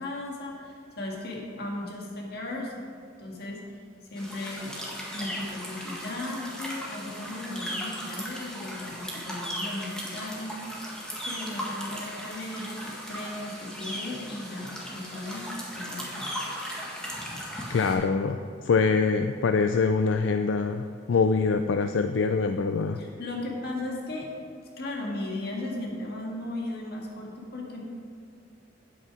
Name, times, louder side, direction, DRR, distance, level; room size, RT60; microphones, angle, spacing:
voice 1, 0.0-2.8 3.2-3.8 4.1-4.8 5.1-11.0 11.2-15.5 15.7-16.3 23.0-24.3 24.8-27.8, left 2 dB, 55° left, -1 dB, 1.9 m, -36 dB
sound 1, 4.2-17.9, equal, 5° left, 1.6 m, -37 dB
voice 2, 17.7-23.0, left 4 dB, 80° left, 7 dB, 0.4 m, -24 dB
9.3 x 8.4 x 4.9 m, 2.4 s
head